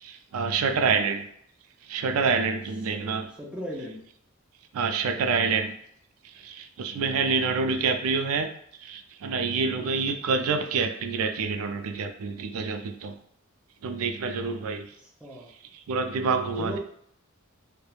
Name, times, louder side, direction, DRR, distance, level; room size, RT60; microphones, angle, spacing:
voice 1, 0.0-1.2 1.9-3.3 4.7-5.7 6.4-8.5 8.8-13.1 13.8-14.9 15.9-16.8, right 5 dB, 85° right, 6 dB, 0.4 m, -27 dB
voice 2, 2.9-4.0 9.8-10.0 15.0-15.5 16.6-16.8, equal, 5° right, -3 dB, 0.4 m, -38 dB
2.9 x 2.1 x 2.3 m, 0.68 s
head